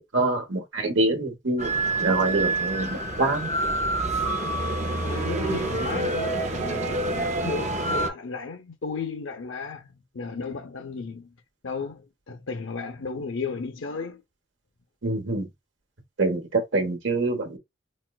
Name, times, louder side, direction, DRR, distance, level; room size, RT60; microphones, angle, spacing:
voice 1, 0.0-3.5 5.4-5.6 15.0-15.5 16.2-17.6, right 2 dB, 70° right, 1.0 m, -26 dB
sound 1, 1.6-8.1, right 2 dB, 35° right, 0.5 m, -27 dB
voice 2, 5.0-11.3 11.6-14.2, left 4 dB, 80° left, 0.7 m, -34 dB
4.1 x 2.2 x 2.3 m
head